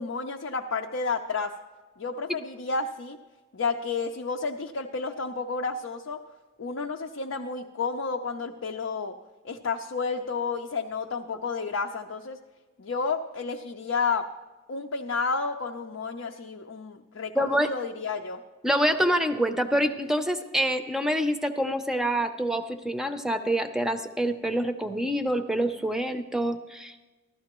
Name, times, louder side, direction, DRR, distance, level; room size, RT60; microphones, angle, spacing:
voice 1, 0.0-1.5 2.0-3.2 3.5-6.2 6.6-9.1 9.4-12.4 12.8-14.3 14.7-18.4, left 4 dB, 85° left, 2 dB, 0.6 m, -31 dB
voice 2, 17.3-17.7 18.6-26.9, right 1 dB, 5° right, 7 dB, 0.5 m, -26 dB
15.0 x 12.5 x 3.0 m, 1.2 s
head